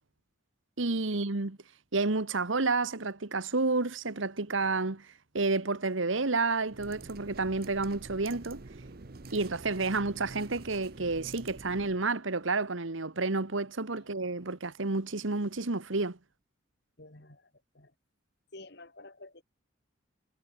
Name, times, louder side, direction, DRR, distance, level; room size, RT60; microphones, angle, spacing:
voice 1, 0.8-1.6 1.9-5.1 5.3-8.6 9.3-16.2, right 3 dB, 75° right, 1.5 m, -30 dB
sound 1, 6.7-12.0, right 3 dB, 50° right, 0.8 m, -47 dB
voice 2, 17.0-17.9 18.5-19.4, left 2 dB, 55° left, 3.3 m, -50 dB
head